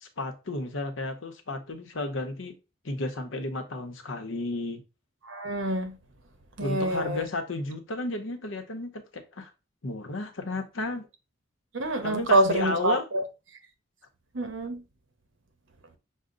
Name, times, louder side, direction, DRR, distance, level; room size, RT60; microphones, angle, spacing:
voice 1, 0.0-2.6 2.8-4.8 6.6-9.5 9.8-11.1 12.0-13.1, left 2 dB, 85° left, 0.9 m, -33 dB
voice 2, 5.3-6.0 6.6-7.2 11.7-13.2 14.3-14.8, right 1 dB, 80° right, 1.0 m, -26 dB
6.3 x 2.1 x 3.8 m
head